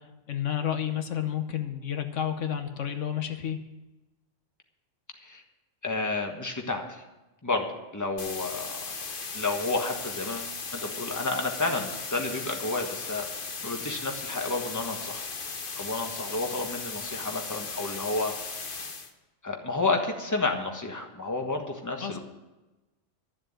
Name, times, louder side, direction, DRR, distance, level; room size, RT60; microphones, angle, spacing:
voice 1, 0.0-3.6 22.0-22.2, left 9 dB, 75° left, 7 dB, 1.3 m, -31 dB
voice 2, 5.8-7.0 7.4-7.7 7.9-8.8 9.3-13.3 13.6-15.2 15.8-18.3 18.6-18.9 19.4-22.2, left 3 dB, 15° left, 3 dB, 1.4 m, -31 dB
sound 1, 8.2-19.1, left 4 dB, 45° left, 1.2 m, -37 dB
12.5 x 7.5 x 8.8 m, 1.1 s
omnidirectional pair, 1.3 m